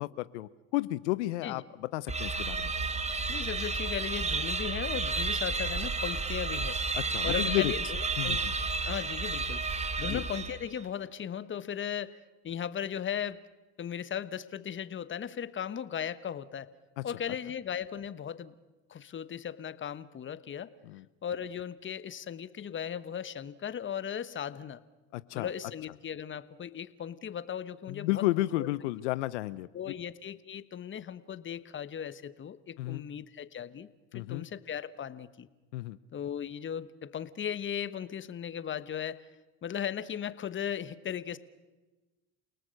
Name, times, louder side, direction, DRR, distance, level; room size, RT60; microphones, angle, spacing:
voice 1, 0.0-2.7 6.9-7.7 8.2-8.5 10.0-10.2 17.0-17.1 20.8-21.0 25.1-25.5 27.9-29.9 32.8-33.0 34.1-34.4 35.7-36.0, left 18 dB, 85° left, 16 dB, 0.7 m, -32 dB
sound 1, 2.1-10.8, right 3 dB, 20° right, 1.9 m, -32 dB
voice 2, 3.3-6.8 7.2-8.4 8.8-9.6 10.0-12.2 12.4-13.4 13.8-16.7 17.0-18.5 18.9-20.7 21.2-24.8 25.3-28.2 28.6-28.7 29.7-33.9 34.1-35.5 36.1-39.3 39.6-41.4, left 8 dB, 35° left, 15 dB, 1.3 m, -37 dB
29.5 x 18.5 x 6.5 m, 1.2 s
hypercardioid pair, 80°, 34 cm